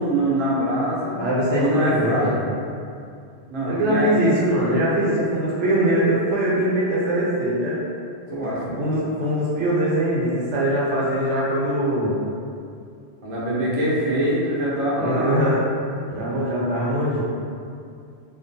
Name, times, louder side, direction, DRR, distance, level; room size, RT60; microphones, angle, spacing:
voice 1, 0.0-1.2 1.5-2.4 3.5-4.2 8.3-8.8 13.2-15.4, right 1 dB, 45° right, -7 dB, 0.4 m, -23 dB
voice 2, 1.2-2.4 3.7-7.8 8.8-12.2 15.0-15.6 16.1-17.2, right 1 dB, 80° right, -6 dB, 1.0 m, -22 dB
2.4 x 2.2 x 2.6 m, 2.4 s
omnidirectional pair, 1.2 m